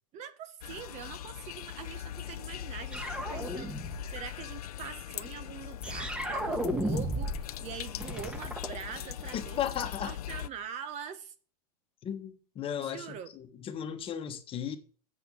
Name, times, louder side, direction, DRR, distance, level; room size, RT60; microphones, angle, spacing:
voice 1, 0.1-11.3 12.8-13.3, right 8 dB, 35° right, 1.1 m, -43 dB
sound 1, 0.6-10.5, left 12 dB, 80° left, 0.6 m, -41 dB
sound 2, 2.9-4.2 5.8-7.5 7.7-9.4, right 1 dB, 5° right, 1.2 m, -34 dB
voice 2, 9.3-10.1 12.0-14.8, left 9 dB, 30° left, 1.3 m, -35 dB
8.2 x 6.0 x 7.1 m
hypercardioid pair, 120°, 19 cm